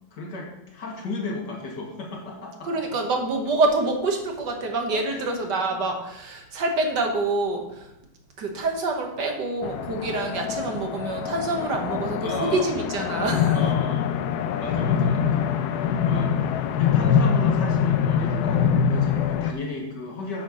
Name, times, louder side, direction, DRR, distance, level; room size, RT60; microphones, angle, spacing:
voice 1, 0.1-3.0 4.9-5.4 12.2-12.7 13.5-14.1 14.6-16.5 16.8-20.4, left 2 dB, 60° left, 0 dB, 2.2 m, -34 dB
voice 2, 2.6-7.9 8.4-13.6, right 2 dB, 60° right, 3 dB, 1.7 m, -26 dB
sound 1, 9.6-19.5, left 7 dB, 75° left, 0.9 m, -24 dB
9.2 x 4.3 x 6.2 m, 0.86 s
omnidirectional pair, 2.1 m